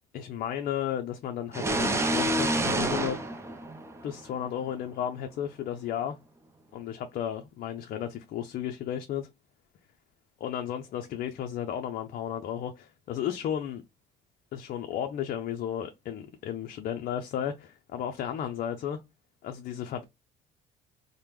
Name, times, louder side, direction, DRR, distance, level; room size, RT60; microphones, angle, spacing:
voice 1, 0.1-3.2 4.0-6.2 6.7-9.3 10.4-13.8 14.5-19.0 19.4-20.0, left 9 dB, 60° left, 0.5 m, -33 dB
sound 1, 1.5-4.3, right 1 dB, 15° right, 0.5 m, -28 dB
3.3 x 2.1 x 2.9 m
cardioid pair, 110°, 17 cm